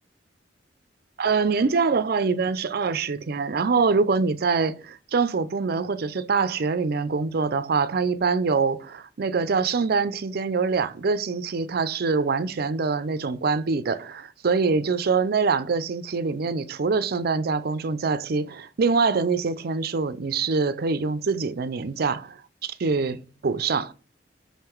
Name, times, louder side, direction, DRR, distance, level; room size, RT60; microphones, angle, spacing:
voice 1, 1.2-23.9, right 4 dB, 55° right, 0.5 m, -24 dB
5.7 x 3.8 x 4.4 m
head